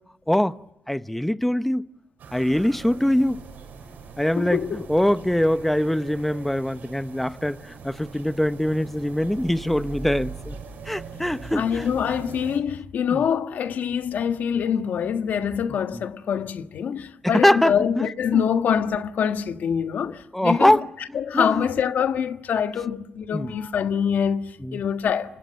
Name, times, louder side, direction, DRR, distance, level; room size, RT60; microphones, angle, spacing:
voice 1, 0.9-1.8 2.3-3.4 4.2-10.6 10.9-11.9 13.1-13.3 15.9-16.0 17.2-18.1 18.3-18.5 20.1-20.8 21.3-21.6 23.3-23.5 24.6-24.8, left 1 dB, 5° left, 1.0 m, -23 dB
sound 1, 2.2-12.6, right 4 dB, 80° right, 6.8 m, -41 dB
voice 2, 4.4-4.9 11.5-20.7 21.1-25.4, left 8 dB, 75° left, 1.5 m, -25 dB
28.5 x 26.5 x 7.6 m
cardioid pair, 70°, 3 cm